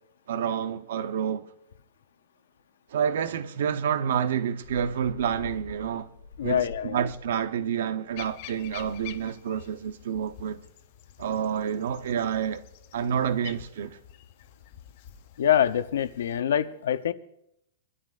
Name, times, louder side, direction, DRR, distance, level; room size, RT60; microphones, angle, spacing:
voice 1, 0.3-1.5 2.9-6.1 6.4-10.6 11.2-12.6 12.9-14.0, right 8 dB, 70° right, 0.9 m, -28 dB
sound 1, 4.1-9.3, left 4 dB, 65° left, 2.9 m, -46 dB
voice 2, 6.4-7.0 15.4-17.1, left 9 dB, 90° left, 0.8 m, -25 dB
sound 2, 8.2-16.4, left 12 dB, 40° left, 0.7 m, -48 dB
25.0 x 12.5 x 2.6 m
supercardioid pair, 170°, 0 cm